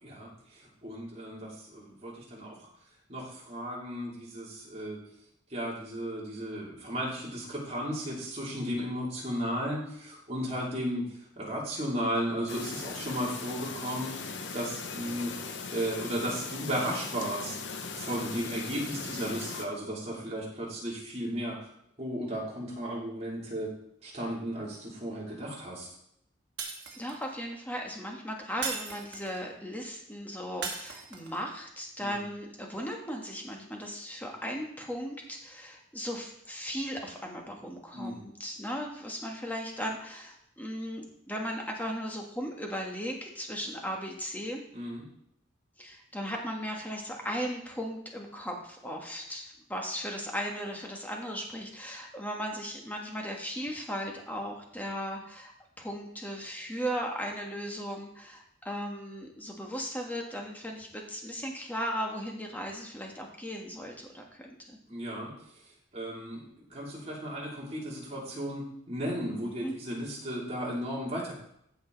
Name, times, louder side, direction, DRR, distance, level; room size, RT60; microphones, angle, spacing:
voice 1, 0.0-2.7 3.1-5.0 5.5-11.1 11.4-15.3 15.7-17.6 17.9-21.7 22.0-23.7 24.0-25.9 32.0-32.2 37.9-38.2 44.7-45.0 64.9-65.3 65.9-71.3, equal, 35° right, -5 dB, 3.2 m, -35 dB
Chirp tweet, 12.5-19.7, left 4 dB, 65° left, 0.9 m, -39 dB
Shatter, 26.6-27.3 28.6-29.4 30.6-31.4, right 5 dB, 60° right, 1.5 m, -37 dB
voice 2, 27.0-44.6 45.8-64.8 69.4-69.7, equal, 10° left, 1 dB, 1.5 m, -37 dB
14.5 x 5.2 x 4.0 m, 0.73 s
head